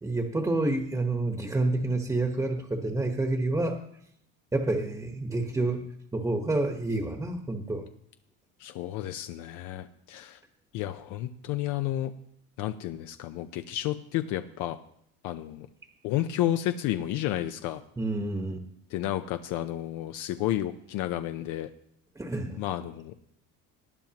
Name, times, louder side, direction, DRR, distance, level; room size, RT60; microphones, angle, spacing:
voice 1, 0.0-3.8 4.5-7.9 18.0-18.6 22.2-22.6, right 2 dB, 10° right, 3 dB, 1.2 m, -28 dB
voice 2, 8.6-10.4 10.7-12.1 12.6-14.8 15.2-15.7 16.0-17.8 18.9-21.7 22.6-23.1, left 13 dB, 70° left, 8 dB, 0.8 m, -31 dB
19.0 x 10.5 x 2.9 m, 0.69 s
cardioid pair, 120°, 32 cm